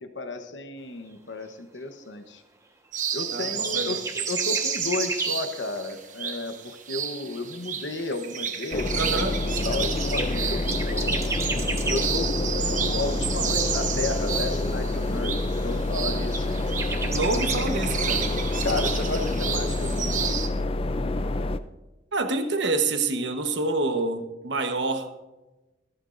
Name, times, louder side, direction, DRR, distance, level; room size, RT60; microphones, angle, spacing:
voice 1, 0.0-2.4 3.1-9.3 9.6-11.3 11.8-16.6 18.6-20.4, left 2 dB, 80° left, 1.1 m, -33 dB
sound 1, 2.9-20.5, right 7 dB, 45° right, 1.1 m, -32 dB
sound 2, 3.3-5.4 7.0-7.1 7.7-7.8 8.1-8.2 8.4-8.5 9.0-12.1 16.0-17.6, right 3 dB, 15° right, 1.3 m, -32 dB
voice 2, 3.3-4.0 9.0-9.4 17.0-18.4 22.1-25.1, right 3 dB, 75° right, 1.2 m, -27 dB
sound 3, 8.7-21.6, left 2 dB, 30° left, 0.4 m, -27 dB
25.5 x 8.9 x 2.6 m
head